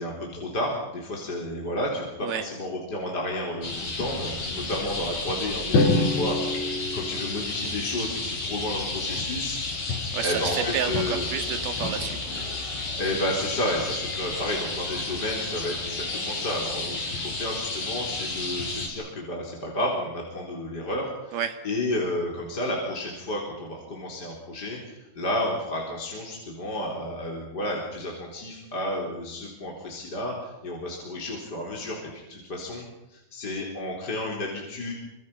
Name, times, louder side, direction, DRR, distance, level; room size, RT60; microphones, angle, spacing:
voice 1, 0.0-11.2 13.0-21.4 21.6-34.9, left 1 dB, 25° left, -1 dB, 4.4 m, -31 dB
sound 1, 3.6-18.9, left 3 dB, 65° left, 7.2 m, -32 dB
Drum, 5.7-7.9, left 2 dB, 85° left, 5.4 m, -25 dB
voice 2, 10.1-12.4 21.3-21.6, right 8 dB, 70° right, 8 dB, 3.8 m, -30 dB
28.0 x 26.0 x 5.7 m, 0.92 s
omnidirectional pair, 4.6 m